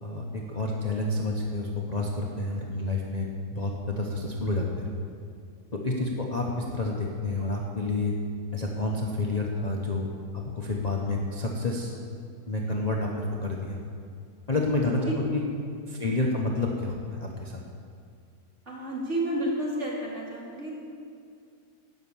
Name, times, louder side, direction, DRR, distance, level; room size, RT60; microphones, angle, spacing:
voice 1, 0.0-4.9 5.8-8.1 8.5-10.1 10.3-11.9 12.5-13.8 14.5-15.4 15.9-17.6, left 2 dB, 30° left, -2 dB, 1.0 m, -29 dB
voice 2, 16.0-16.4 18.7-20.8, right 1 dB, 45° right, -4 dB, 3.1 m, -31 dB
17.5 x 6.6 x 7.2 m, 2.4 s
omnidirectional pair, 1.8 m